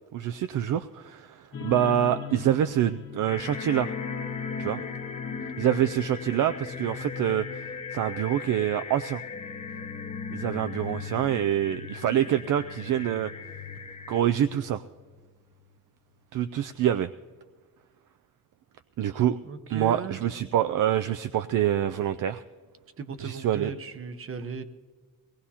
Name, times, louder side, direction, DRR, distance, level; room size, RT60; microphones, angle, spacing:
voice 1, 0.1-3.9 4.6-4.8 5.6-7.7 7.9-9.2 10.3-13.3 14.1-14.8 16.3-17.1 19.0-19.4 19.7-22.4 23.2-23.7, right 11 dB, 65° right, 11 dB, 0.5 m, -26 dB
sound 1, 1.5-14.8 15.1-15.3 15.7-15.8, left 6 dB, 40° left, 0.9 m, -39 dB
sound 2, 3.3-14.2, left 4 dB, 20° left, 0.6 m, -41 dB
voice 2, 19.4-20.2 23.0-24.6, right 5 dB, 40° right, 10 dB, 0.9 m, -37 dB
22.0 x 18.5 x 2.8 m, 1.4 s
cardioid pair, 130°, 34 cm